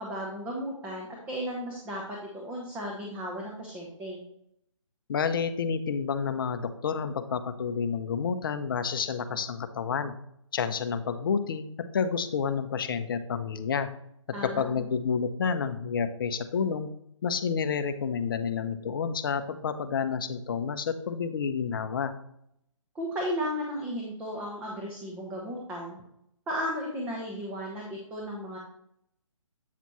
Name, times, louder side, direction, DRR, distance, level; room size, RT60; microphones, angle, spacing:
voice 1, 0.0-4.2 14.3-14.9 22.9-26.0 26.5-28.6, equal, 10° right, -2 dB, 0.7 m, -35 dB
voice 2, 5.1-10.1 10.5-11.7 11.9-13.9 14.5-16.9 17.2-22.1, left 6 dB, 40° left, 10 dB, 0.6 m, -29 dB
8.2 x 5.9 x 3.0 m, 0.73 s
hypercardioid pair, 155°, 17 cm